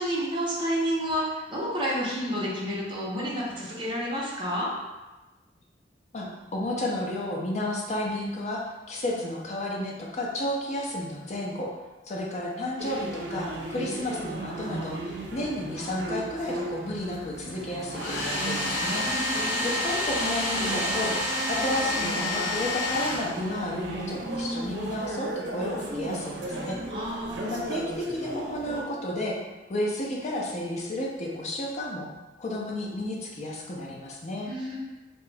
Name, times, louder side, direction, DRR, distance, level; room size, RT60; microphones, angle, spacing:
voice 1, 0.0-4.7 19.1-19.7 26.9-27.5 34.5-34.8, equal, 30° right, -6 dB, 0.7 m, -30 dB
voice 2, 6.1-8.6 8.9-11.8 12.0-19.2 19.6-26.8 27.4-29.4 29.7-32.1 32.4-34.5, left 1 dB, 40° left, -2 dB, 0.6 m, -32 dB
sound 1, 12.8-28.8, right 2 dB, 80° right, 0.5 m, -36 dB
Domestic sounds home sounds, 17.9-23.8, left 1 dB, 70° left, 0.8 m, -29 dB
2.9 x 2.2 x 3.3 m, 1.1 s
head